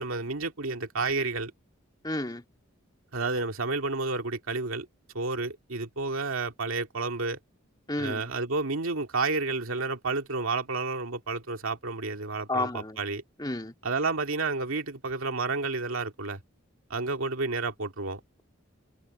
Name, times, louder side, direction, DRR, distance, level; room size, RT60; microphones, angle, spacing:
voice 1, 0.0-1.5 3.1-4.9 5.1-7.4 8.0-13.2 13.8-16.4 16.9-18.2, right 3 dB, 85° right, 2.2 m, -30 dB
voice 2, 2.0-2.4 7.9-8.2 12.5-13.0 13.4-13.7, left 2 dB, 20° left, 2.4 m, -31 dB
head